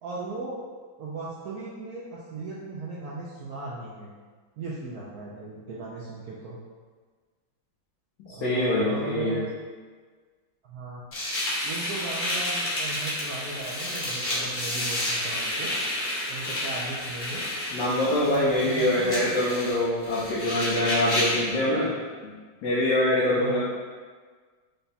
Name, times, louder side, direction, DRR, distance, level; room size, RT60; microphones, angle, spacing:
voice 1, 0.0-0.6 1.0-4.1 4.6-6.6 8.3-9.5 10.6-11.0 11.6-15.7 16.3-17.4 18.2-19.3 23.3-23.6, right 3 dB, 75° right, -6 dB, 0.9 m, -37 dB
voice 2, 8.3-9.4 17.7-21.9 22.2-22.3 22.6-23.6, left 1 dB, 70° left, -7 dB, 1.4 m, -24 dB
sound 1, 11.1-21.5, left 1 dB, 35° left, 0.9 m, -30 dB
5.2 x 2.3 x 4.0 m, 1.5 s
omnidirectional pair, 2.2 m